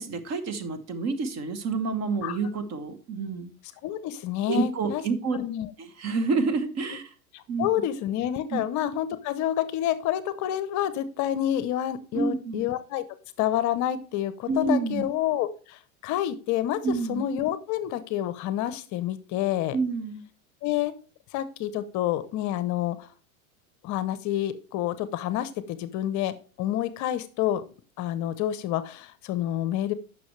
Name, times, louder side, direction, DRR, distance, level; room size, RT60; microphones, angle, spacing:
voice 1, 0.0-3.5 4.5-5.4 5.8-7.1 7.5-7.7 8.5-8.6 12.1-12.6 14.5-15.0 16.8-17.2 19.7-20.2, right 4 dB, 35° right, 11 dB, 1.3 m, -28 dB
voice 2, 3.8-5.0 5.3-5.7 7.3-13.0 13.4-16.8 17.1-19.8 20.6-20.9 21.3-23.1 23.8-27.6 28.0-29.9, left 12 dB, 40° left, 14 dB, 0.7 m, -28 dB
10.0 x 6.0 x 3.2 m, 0.39 s
hypercardioid pair, 110°, 43 cm